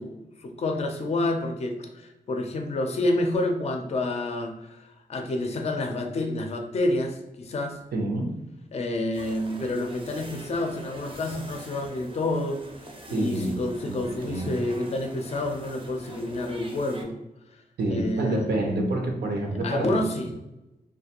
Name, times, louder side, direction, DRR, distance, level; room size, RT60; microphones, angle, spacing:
voice 1, 0.0-7.8 8.7-12.6 13.1-17.1 17.9-18.5 19.6-20.3, left 2 dB, 40° left, 4 dB, 0.4 m, -29 dB
voice 2, 7.9-8.3 13.1-13.6 13.9-14.6 17.8-20.0, right 1 dB, 90° right, 2 dB, 0.6 m, -27 dB
sound 1, 9.1-17.0, right 2 dB, 35° right, 0.5 m, -43 dB
2.4 x 2.2 x 2.8 m, 0.92 s
wide cardioid pair, 130°, 16 cm